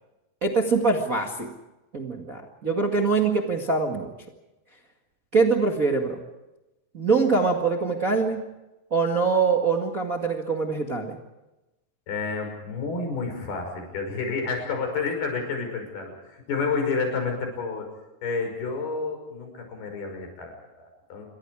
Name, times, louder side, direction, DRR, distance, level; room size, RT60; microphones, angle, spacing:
voice 1, 0.4-1.5 1.9-4.1 5.3-6.2 6.9-8.4 8.9-11.2, right 4 dB, 40° right, 2 dB, 1.2 m, -23 dB
voice 2, 12.1-17.9 18.2-21.3, left 4 dB, 65° left, 4 dB, 7.6 m, -30 dB
28.5 x 25.0 x 4.9 m, 1.0 s
omnidirectional pair, 4.8 m